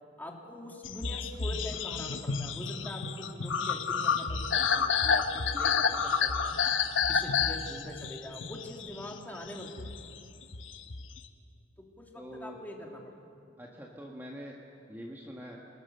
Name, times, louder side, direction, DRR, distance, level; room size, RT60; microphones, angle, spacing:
voice 1, 0.2-6.5 7.1-9.9 11.8-13.1, left 1 dB, 10° left, 0 dB, 2.7 m, -43 dB
sound 1, 0.8-11.3, left 6 dB, 85° left, 1.2 m, -30 dB
voice 2, 12.1-12.6 13.6-14.5 14.9-15.6, equal, 10° right, -1 dB, 1.6 m, -44 dB
28.5 x 20.0 x 6.8 m, 2.5 s
head